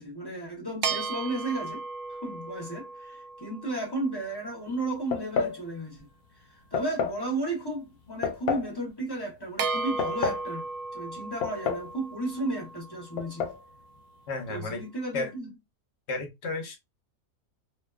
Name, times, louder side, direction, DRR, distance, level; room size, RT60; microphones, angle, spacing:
voice 1, 0.0-1.8 2.1-6.1 6.4-10.6 10.9-13.5 14.5-15.5, right 2 dB, 20° left, 0.8 m, -34 dB
sound 1, 0.8-4.5 9.6-14.0, right 4 dB, 75° right, 1.0 m, -36 dB
sound 2, 5.1-5.6 6.7-7.2 8.2-8.7 9.7-10.5 11.4-11.9 12.2-12.3 13.2-13.6, left 5 dB, 80° left, 1.0 m, -29 dB
voice 2, 14.3-14.8 15.1-15.3 16.1-16.8, left 3 dB, 55° left, 0.9 m, -32 dB
2.6 x 2.2 x 2.3 m
omnidirectional pair, 1.5 m